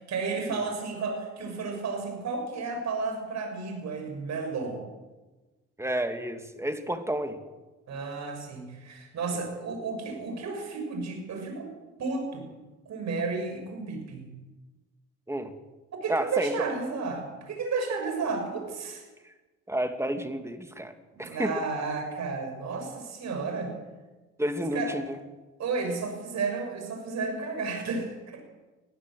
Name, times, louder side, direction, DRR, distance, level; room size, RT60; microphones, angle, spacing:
voice 1, 0.1-4.9 7.9-11.7 12.0-12.5 12.9-14.3 16.0-19.1 21.1-23.7 24.7-24.9 25.6-28.4, right 4 dB, 60° right, 4 dB, 7.0 m, -32 dB
voice 2, 5.8-7.4 15.3-15.5 16.1-16.7 19.2-19.3 19.7-20.9 21.2-21.6 24.4-25.2, right 1 dB, 10° right, 7 dB, 2.6 m, -30 dB
22.5 x 15.0 x 7.9 m, 1.2 s
supercardioid pair, 80°, 30 cm